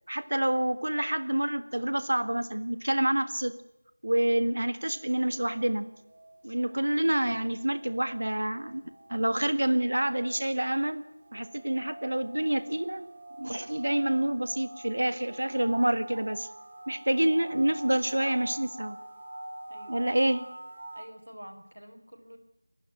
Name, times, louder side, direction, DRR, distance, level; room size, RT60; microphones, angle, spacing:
voice 1, 0.1-3.6 4.0-5.9 6.4-8.8 9.1-11.0 11.3-13.1 13.4-16.5 16.9-19.0 19.9-20.4, right 1 dB, 55° right, 12 dB, 1.7 m, -27 dB
sound 1, 4.8-21.1, right 1 dB, 25° right, 2.5 m, -46 dB
voice 2, 19.7-20.1 20.9-22.4, equal, 80° right, 6 dB, 4.8 m, -48 dB
24.5 x 12.0 x 9.9 m, 0.84 s
figure-of-eight pair, 175°, 0 cm